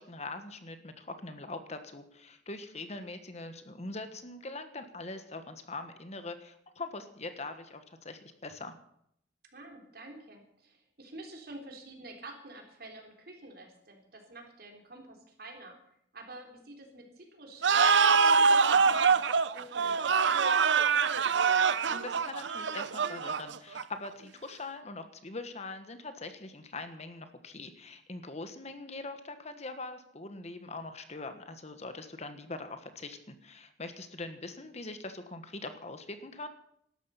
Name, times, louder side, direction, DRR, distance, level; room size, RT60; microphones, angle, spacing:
voice 1, 0.0-8.8 21.8-36.5, left 3 dB, 35° left, 9 dB, 1.3 m, -42 dB
voice 2, 9.5-15.8 16.1-19.2 19.5-20.5, right 2 dB, 55° right, 2 dB, 3.7 m, -48 dB
sound 1, 17.6-24.1, right 5 dB, 75° right, 0.7 m, -24 dB
18.5 x 12.5 x 5.7 m, 0.72 s
head